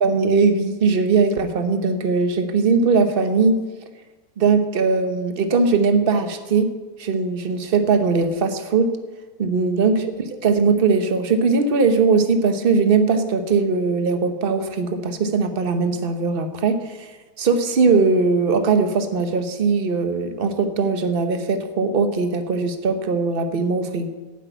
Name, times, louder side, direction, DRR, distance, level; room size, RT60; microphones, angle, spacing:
voice 1, 0.0-3.6 4.4-6.7 7.0-9.0 9.4-17.1 17.4-24.1, right 4 dB, 40° right, 7 dB, 1.2 m, -20 dB
10.0 x 8.2 x 9.2 m, 1.2 s
omnidirectional pair, 1.7 m